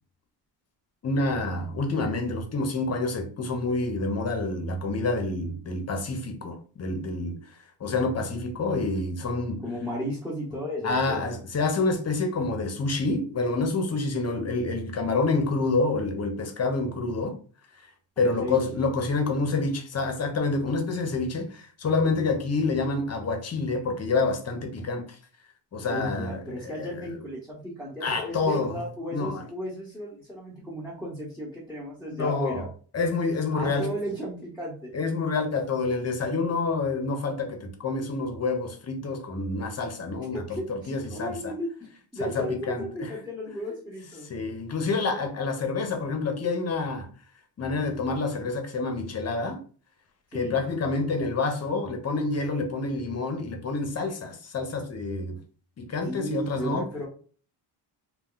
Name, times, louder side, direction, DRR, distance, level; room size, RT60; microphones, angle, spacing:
voice 1, 1.0-7.4 7.8-9.6 10.8-17.4 17.8-17.9 18.2-25.2 25.7-27.2 28.0-28.8 29.1-29.4 32.1-32.7 32.9-33.9 34.9-41.5 42.2-43.1 44.3-47.1 47.6-49.6 50.3-55.4 55.8-56.8, left 3 dB, 35° left, 0.7 m, -28 dB
voice 2, 9.6-11.2 18.2-18.6 25.9-32.7 33.5-34.9 40.2-44.3 50.3-50.6 56.0-57.1, equal, 5° right, 0.9 m, -34 dB
2.3 x 2.1 x 3.8 m
cardioid pair, 110°, 43 cm